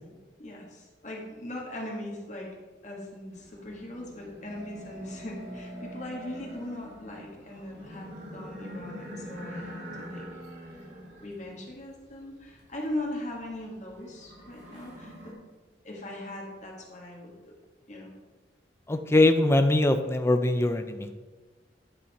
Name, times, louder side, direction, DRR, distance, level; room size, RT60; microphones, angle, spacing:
voice 1, 0.4-2.5 2.8-9.8 10.1-10.4 11.2-15.4 15.8-17.5 17.9-18.1, left 1 dB, 40° left, -1 dB, 1.6 m, -39 dB
sound 1, 3.3-15.3, equal, 85° right, 2.2 m, -44 dB
voice 2, 18.9-21.2, left 2 dB, 15° left, 7 dB, 0.4 m, -22 dB
9.9 x 5.5 x 4.2 m, 1.3 s
head